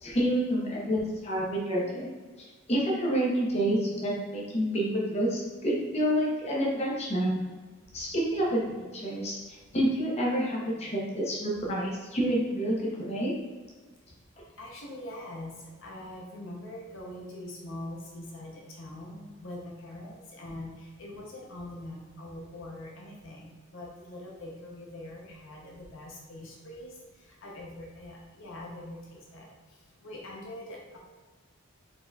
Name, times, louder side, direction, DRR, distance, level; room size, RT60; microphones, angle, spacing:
voice 1, 0.0-2.1 2.7-7.4 7.9-9.4 9.7-13.3, equal, 30° left, -4 dB, 0.8 m, -28 dB
voice 2, 14.6-15.5 15.8-26.9 27.4-29.5 30.0-31.0, left 1 dB, 60° left, -3 dB, 0.7 m, -43 dB
4.2 x 3.9 x 2.3 m, 1.4 s
head